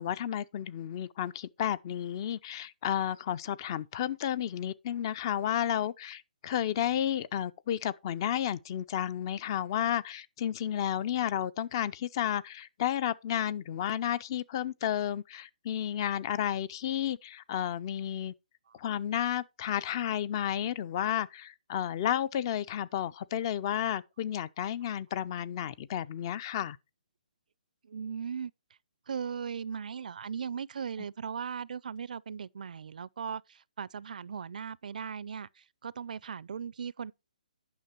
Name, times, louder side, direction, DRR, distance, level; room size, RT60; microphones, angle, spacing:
voice 1, 0.0-18.3 18.7-26.8, left 10 dB, 30° left, 0.4 m, -32 dB
voice 2, 27.8-28.5 29.1-37.1, right 7 dB, 65° right, 0.4 m, -38 dB
9.5 x 5.9 x 4.4 m
hypercardioid pair, 155°, 5 cm